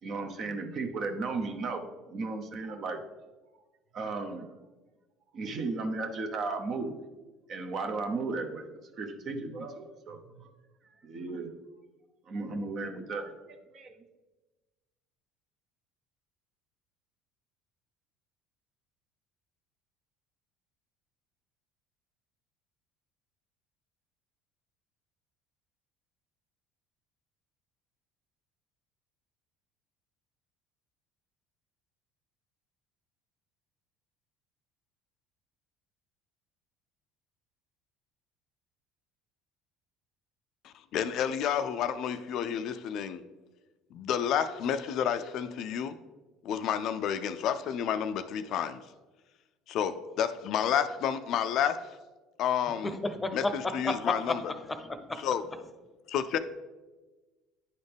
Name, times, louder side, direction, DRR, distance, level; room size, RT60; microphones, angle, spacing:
voice 1, 0.0-3.0 3.9-4.5 5.3-7.0 7.5-10.5 11.0-11.5 12.3-13.3 13.7-14.0, right 3 dB, 50° right, 0.9 m, -35 dB
voice 2, 40.6-43.2 43.9-46.0 46.4-48.8 49.7-51.9 52.4-53.0 53.3-54.4 55.2-55.4 56.1-56.4, left 8 dB, 60° left, 0.3 m, -30 dB
voice 3, 52.8-54.4 54.7-55.3, left 2 dB, 20° left, 0.7 m, -32 dB
9.3 x 4.1 x 3.4 m
hypercardioid pair, 75°, 0 cm